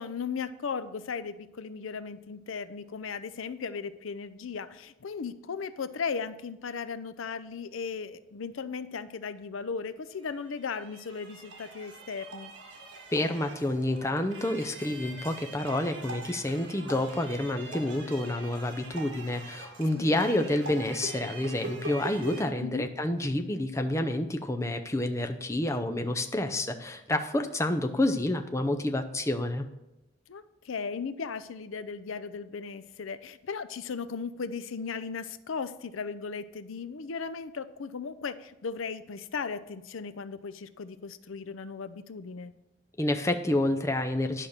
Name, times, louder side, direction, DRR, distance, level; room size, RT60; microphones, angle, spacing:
voice 1, 0.0-12.5 19.9-20.3 22.6-22.9 30.3-42.5, left 5 dB, 80° left, 14 dB, 0.5 m, -37 dB
sound 1, 10.1-22.4, right 2 dB, 60° right, 2.2 m, -43 dB
voice 2, 13.1-29.7 43.0-44.5, left 1 dB, 15° left, 6 dB, 0.6 m, -29 dB
11.0 x 5.8 x 6.6 m, 0.94 s
head